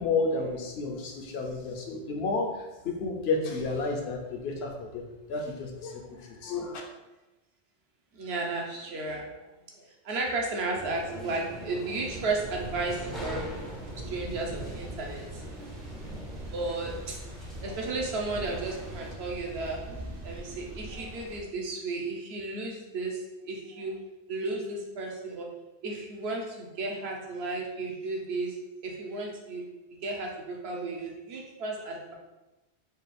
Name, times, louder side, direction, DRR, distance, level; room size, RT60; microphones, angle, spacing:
voice 1, 0.0-6.8, left 3 dB, 70° left, 2 dB, 0.9 m, -31 dB
voice 2, 8.1-9.4 9.8-13.5 13.9-15.4 16.5-17.2 17.6-19.8 20.2-24.0 24.3-25.5 25.8-28.6 28.8-29.6 30.0-32.1, right 3 dB, 70° right, 0 dB, 1.0 m, -34 dB
sound 1, 10.7-19.1, equal, ahead, 0.4 m, -43 dB
sound 2, 12.1-21.4, right 1 dB, 45° right, 0.7 m, -42 dB
3.9 x 2.4 x 4.1 m, 1.0 s
omnidirectional pair, 1.1 m